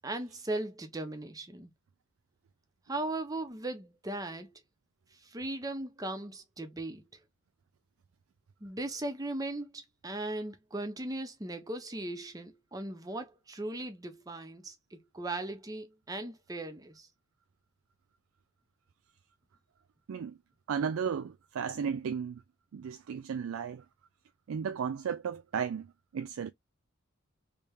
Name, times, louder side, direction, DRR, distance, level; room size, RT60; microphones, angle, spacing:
voice 1, 0.0-1.7 2.9-4.5 5.1-7.0 8.6-17.1, right 2 dB, 15° right, 0.6 m, -38 dB
voice 2, 20.7-22.4 22.7-23.8 24.5-25.9 26.1-26.5, right 7 dB, 85° right, 0.4 m, -34 dB
3.2 x 2.7 x 3.5 m
head